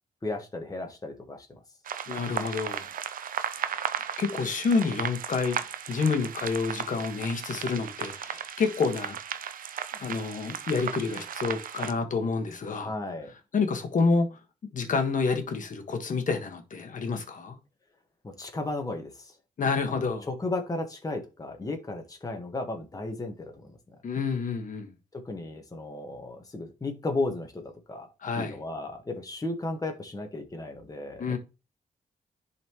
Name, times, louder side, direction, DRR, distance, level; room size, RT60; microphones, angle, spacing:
voice 1, 0.2-1.6 12.7-13.3 18.2-19.3 19.9-23.7 25.1-28.1 28.4-31.4, left 2 dB, 25° left, 1.4 m, -34 dB
sound 1, 1.8-11.9, right 8 dB, 70° right, 0.6 m, -35 dB
voice 2, 2.1-2.9 3.6-3.7 4.2-5.6 5.9-9.2 9.9-12.9 13.5-14.4 14.7-17.6 19.6-20.2 24.0-24.9 28.2-28.6 31.2-31.4, left 4 dB, 60° left, 1.5 m, -28 dB
10.5 x 4.2 x 3.1 m
cardioid pair, 75°, 15 cm